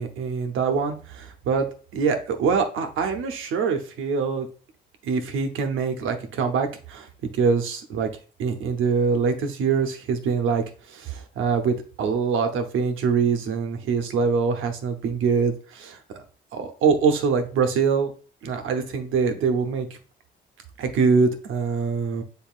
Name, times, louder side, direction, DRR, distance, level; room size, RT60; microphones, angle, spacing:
voice 1, 0.0-4.5 5.0-7.1 7.3-8.1 8.4-16.0 16.5-18.1 18.4-19.9 20.8-22.2, right 5 dB, 85° right, 6 dB, 0.8 m, -24 dB
5.5 x 4.0 x 2.4 m, 0.39 s
cardioid pair, 90°, 20 cm